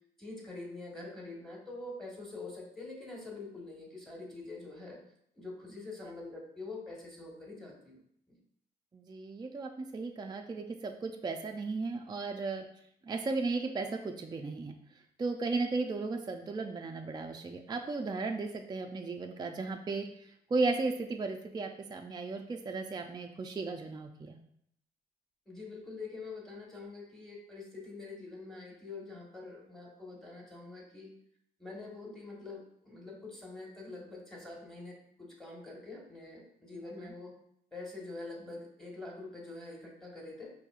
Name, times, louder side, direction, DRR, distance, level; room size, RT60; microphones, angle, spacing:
voice 1, 0.2-5.0 5.3-8.0 8.3-8.4 25.5-31.1 31.6-37.3 37.7-40.5, left 3 dB, 5° left, -2 dB, 1.3 m, -45 dB
voice 2, 8.9-12.7 13.0-14.7 15.2-24.4 37.0-37.1, right 3 dB, 25° right, 4 dB, 0.3 m, -35 dB
4.7 x 2.7 x 2.4 m, 0.71 s
supercardioid pair, 60°, 18 cm